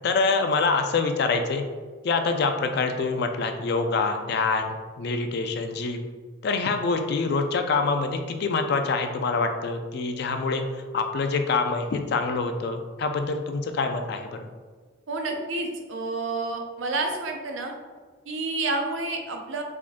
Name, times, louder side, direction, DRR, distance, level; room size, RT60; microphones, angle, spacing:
voice 1, 0.0-1.6 2.0-6.0 6.4-14.4, left 4 dB, 55° left, 6 dB, 0.4 m, -25 dB
voice 2, 15.1-17.7 18.3-19.6, right 3 dB, 85° right, 3 dB, 0.5 m, -29 dB
3.6 x 3.6 x 2.5 m, 1.5 s
head